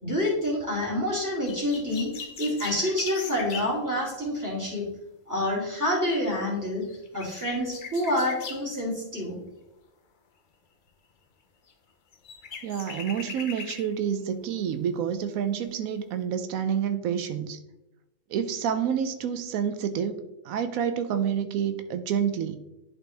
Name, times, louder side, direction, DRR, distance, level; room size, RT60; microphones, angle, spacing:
voice 1, 0.0-4.8 5.3-6.8 7.1-9.4, left 1 dB, 15° right, -4 dB, 2.4 m, -28 dB
sound 1, 1.5-3.7 6.5-6.6 6.8-8.7 11.7-11.8 12.1-13.9 14.4-14.5, left 5 dB, 45° left, 0.7 m, -40 dB
voice 2, 12.6-17.6 18.3-22.6, right 8 dB, 90° right, 9 dB, 1.0 m, -28 dB
11.0 x 4.2 x 3.4 m, 0.98 s
omnidirectional pair, 1.4 m